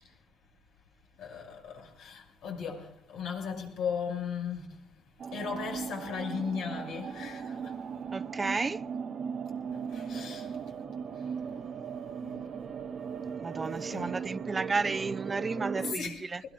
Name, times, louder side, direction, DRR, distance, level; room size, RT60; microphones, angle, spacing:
voice 1, 1.2-4.8 5.3-7.7 9.7-10.5 12.2-12.7 13.7-14.1 15.8-16.2, left 6 dB, 90° left, 6.3 m, -37 dB
sound 1, 5.2-15.9, right 6 dB, 55° right, 1.0 m, -38 dB
voice 2, 8.1-8.8 13.4-16.4, right 4 dB, 30° right, 0.6 m, -32 dB
21.5 x 21.5 x 2.5 m
cardioid pair, 90°, 0 cm